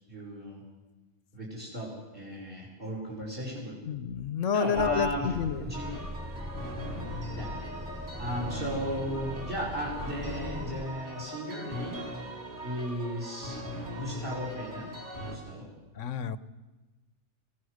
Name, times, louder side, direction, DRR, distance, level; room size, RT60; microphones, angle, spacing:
voice 1, 0.1-0.6 1.3-3.8 4.5-5.3 5.6-6.0 7.4-7.5 8.2-12.0 12.6-13.6 14.0-14.9 15.2-15.7, equal, 40° right, -3 dB, 5.3 m, -35 dB
voice 2, 3.9-5.7 16.0-16.4, left 7 dB, 70° left, 14 dB, 1.2 m, -29 dB
Truck, 4.7-10.9, equal, 10° right, 0.6 m, -40 dB
sound 1, 5.7-15.4, equal, 60° right, 3.7 m, -40 dB
25.5 x 16.5 x 6.5 m, 1.2 s
omnidirectional pair, 1.4 m